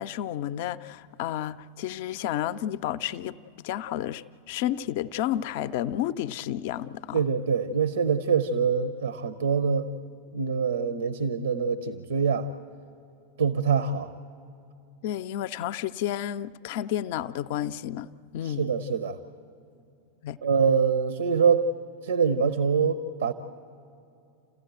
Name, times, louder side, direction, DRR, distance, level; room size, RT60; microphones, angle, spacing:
voice 1, 0.0-3.3 3.6-7.3 15.0-18.7 20.2-20.4, left 11 dB, 50° left, 0.5 m, -31 dB
voice 2, 7.1-9.9 10.3-12.5 13.4-14.1 18.4-19.2 20.4-21.7 22.0-23.3, right 6 dB, 65° right, 0.7 m, -24 dB
29.0 x 15.0 x 8.0 m
figure-of-eight pair, 90°, 0 cm